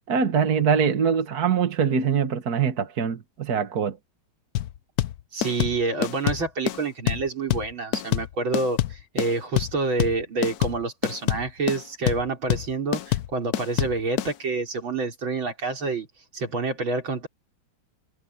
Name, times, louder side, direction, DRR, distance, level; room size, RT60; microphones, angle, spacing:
voice 1, 0.1-4.0, right 6 dB, 50° right, 1.8 m, -23 dB
sound 1, 4.6-14.3, left 13 dB, 70° left, 0.9 m, -26 dB
voice 2, 5.3-16.1 16.3-17.3, right 3 dB, 70° right, 5.0 m, -28 dB
omnidirectional pair, 2.3 m